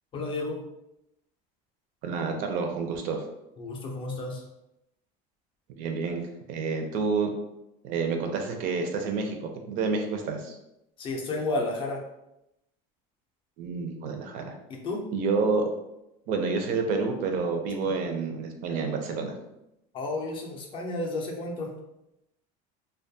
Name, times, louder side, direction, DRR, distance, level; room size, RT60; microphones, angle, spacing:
voice 1, 0.1-0.6 3.6-4.4 11.0-12.1 14.7-15.1 19.9-21.7, left 2 dB, 30° left, 0 dB, 0.4 m, -32 dB
voice 2, 2.0-3.2 5.8-6.2 6.5-7.3 7.8-9.4 9.7-10.6 13.6-14.5 15.1-15.7 16.3-19.3, right 4 dB, 50° right, 5 dB, 0.4 m, -28 dB
2.2 x 2.2 x 2.6 m, 0.86 s
cardioid pair, 160°, 18 cm